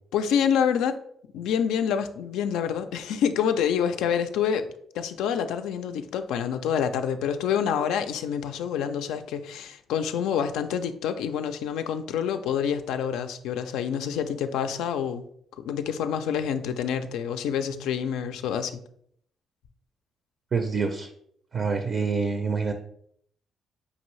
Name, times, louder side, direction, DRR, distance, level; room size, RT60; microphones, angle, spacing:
voice 1, 0.1-1.0 1.3-4.7 4.9-15.3 15.6-18.8, left 8 dB, 90° left, 9 dB, 0.3 m, -27 dB
voice 2, 20.5-21.1 21.5-22.7, right 5 dB, 45° right, 6 dB, 0.4 m, -26 dB
5.1 x 2.7 x 3.1 m, 0.67 s
cardioid pair, 90°, 0 cm